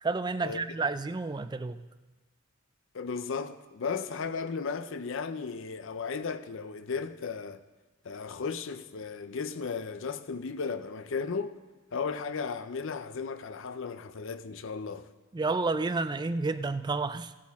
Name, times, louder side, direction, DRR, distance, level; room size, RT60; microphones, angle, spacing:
voice 1, 0.0-1.8 15.3-17.3, right 3 dB, 20° right, 0.4 m, -30 dB
voice 2, 2.9-7.6 8.0-11.6 11.9-15.1, left 5 dB, 65° left, 0.6 m, -35 dB
17.0 x 8.4 x 3.6 m
head